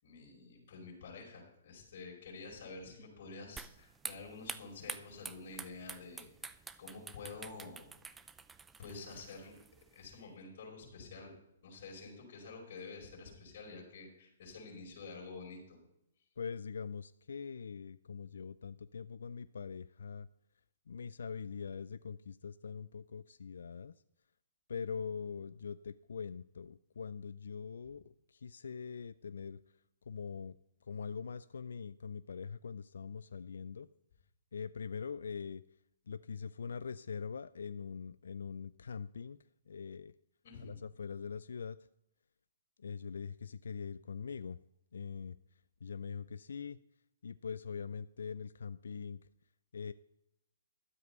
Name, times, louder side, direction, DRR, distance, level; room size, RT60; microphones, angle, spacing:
voice 1, 0.0-6.5 6.8-7.9 8.8-9.5 9.9-11.3 11.6-15.8 40.4-40.7, left 4 dB, 55° left, -3 dB, 5.1 m, -49 dB
sound 1, 3.6-10.1, right 5 dB, 10° right, 0.5 m, -48 dB
voice 2, 16.4-20.3 20.9-23.9 24.7-29.6 30.1-30.6 30.9-33.9 34.5-35.6 36.1-39.4 39.7-40.1 40.6-41.8 42.8-44.6 44.9-45.4 45.8-46.8 47.2-49.2 49.7-49.9, left 6 dB, 75° left, 15 dB, 0.3 m, -43 dB
12.5 x 7.9 x 5.5 m, 0.81 s
hypercardioid pair, 130°, 0 cm